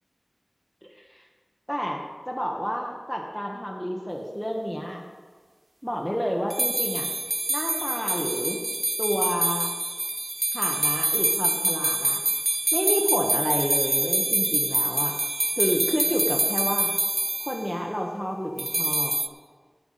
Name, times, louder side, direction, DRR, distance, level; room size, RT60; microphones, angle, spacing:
voice 1, 1.7-2.0 2.3-5.0 5.8-7.1 7.5-8.6 9.0-9.7 10.5-12.2 12.7-15.2 15.6-16.9 17.4-19.1, equal, 5° left, 1 dB, 1.4 m, -29 dB
sound 1, 6.5-17.6 18.6-19.3, right 1 dB, 40° right, 0.5 m, -26 dB
17.5 x 6.0 x 5.6 m, 1.5 s
wide cardioid pair, 55°, 0 cm